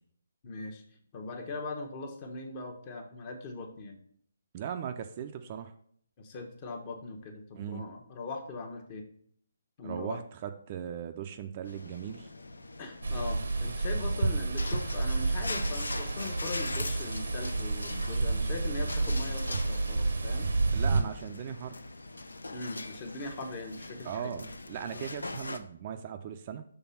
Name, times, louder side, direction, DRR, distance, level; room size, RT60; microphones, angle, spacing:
voice 1, 0.4-0.8 1.1-4.0 6.2-9.1 9.8-10.2 12.8-20.5 22.5-24.3 24.9-25.0, left 3 dB, 35° left, 4 dB, 1.0 m, -40 dB
voice 2, 4.5-5.7 7.5-7.9 9.8-12.3 20.7-21.8 24.0-26.6, right 8 dB, 35° right, 7 dB, 0.4 m, -38 dB
sound 1, 11.6-25.6, left 2 dB, 85° left, 0.5 m, -42 dB
sound 2, 13.0-21.0, right 3 dB, 75° right, 0.8 m, -30 dB
5.9 x 3.3 x 5.5 m, 0.62 s
figure-of-eight pair, 145°, 0 cm